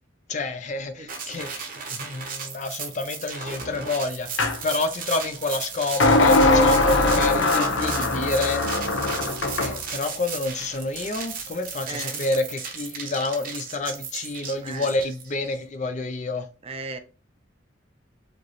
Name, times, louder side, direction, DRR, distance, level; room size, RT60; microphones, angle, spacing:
voice 1, 0.3-8.6 9.6-16.4, left 3 dB, 40° left, 0.5 m, -29 dB
sound 1, 1.1-15.5, right 6 dB, 45° right, 1.0 m, -35 dB
sound 2, 4.4-4.6 6.0-9.8, left 2 dB, 85° left, 0.8 m, -20 dB
voice 2, 11.9-12.2 14.6-14.9 16.6-17.0, right 3 dB, 30° right, 0.6 m, -36 dB
5.0 x 3.0 x 3.1 m
head